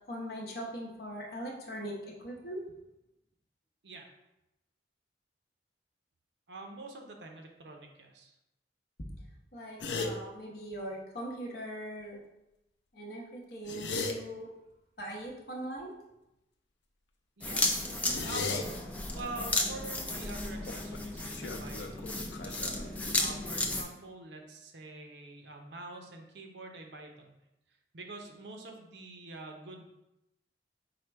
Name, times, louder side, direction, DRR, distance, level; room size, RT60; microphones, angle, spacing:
voice 1, 0.1-2.6 9.0-9.1 9.5-12.2 12.9-14.5 15.0-15.9, right 1 dB, 60° left, -2 dB, 0.8 m, -40 dB
voice 2, 6.5-8.4 17.4-18.6 18.9-27.4 27.9-29.9, right 2 dB, 80° right, 3 dB, 0.6 m, -46 dB
sound 1, 9.8-10.1 13.5-14.1 18.1-18.6 20.7-21.0 21.3-23.4, left 4 dB, 85° left, 0.5 m, -36 dB
sound 2, 17.4-23.8, left 2 dB, 10° left, 0.4 m, -34 dB
4.9 x 2.2 x 4.4 m, 0.89 s
head